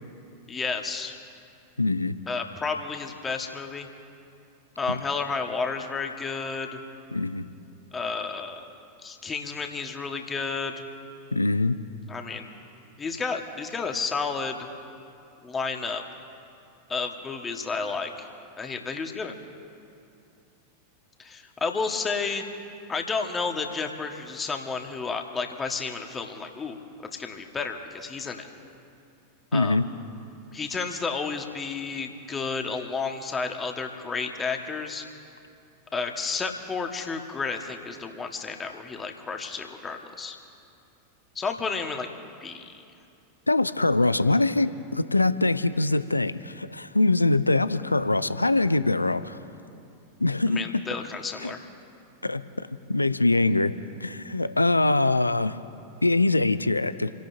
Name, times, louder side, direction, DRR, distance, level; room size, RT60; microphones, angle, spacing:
voice 1, 0.5-1.1 2.3-3.9 4.8-6.8 7.9-8.6 9.0-10.8 12.1-12.5 13.0-14.6 15.4-16.0 16.9-18.3 18.6-19.3 21.2-22.4 22.9-26.8 27.1-28.5 29.5-29.8 30.5-35.0 35.9-40.4 41.3-42.1 42.4-42.7 50.5-51.6, left 4 dB, 15° left, 4 dB, 1.7 m, -31 dB
voice 2, 1.8-2.1 4.9-5.0 7.1-7.4 11.3-11.8 29.5-29.9 43.5-49.4 50.2-50.8 51.4-51.5 52.2-53.7 54.0-55.6 56.0-57.1, left 2 dB, 85° left, 14 dB, 0.5 m, -23 dB
28.5 x 17.5 x 2.8 m, 2.6 s
figure-of-eight pair, 90°, 0 cm